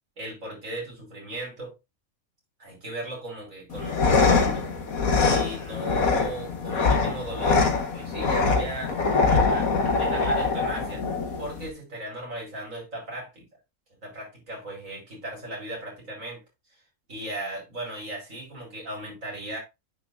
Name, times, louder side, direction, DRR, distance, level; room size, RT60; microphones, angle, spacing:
voice 1, 0.2-1.7 2.6-4.7 5.2-9.0 9.3-11.0 11.4-13.4 14.0-16.4 17.1-19.6, right 1 dB, 65° right, 5.5 m, -36 dB
sound 1, 3.7-11.7, left 4 dB, 80° left, 2.0 m, -23 dB
9.8 x 6.0 x 2.6 m
omnidirectional pair, 1.5 m